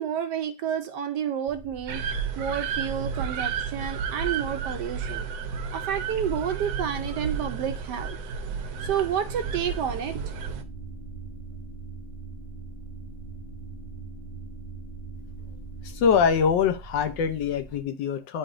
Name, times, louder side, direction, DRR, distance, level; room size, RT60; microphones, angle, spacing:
voice 1, 0.0-2.0 2.4-5.3 5.7-8.2 8.8-10.3, right 9 dB, 70° right, 8 dB, 1.0 m, -30 dB
sound 1, 1.4-17.8, right 3 dB, 20° right, 1.0 m, -44 dB
sound 2, 1.9-10.6, right 6 dB, 90° right, 1.5 m, -32 dB
sound 3, 8.7-16.5, right 5 dB, 45° left, 1.6 m, -43 dB
voice 2, 15.8-18.4, left 6 dB, 70° left, 8 dB, 1.3 m, -24 dB
9.6 x 3.9 x 2.5 m, 0.28 s
omnidirectional pair, 2.1 m